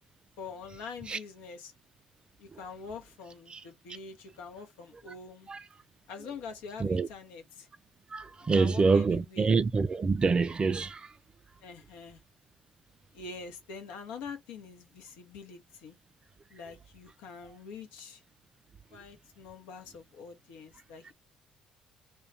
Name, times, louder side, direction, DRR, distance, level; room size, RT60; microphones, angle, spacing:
voice 1, 0.4-1.7 2.4-5.5 6.1-7.7 8.5-9.5 11.6-12.2 13.1-15.9 16.5-18.2 18.9-21.1, left 5 dB, 70° left, 0.7 m, -45 dB
voice 2, 8.1-11.1, right 4 dB, 30° right, 0.3 m, -26 dB
2.2 x 2.2 x 2.6 m
hypercardioid pair, 55°, 3 cm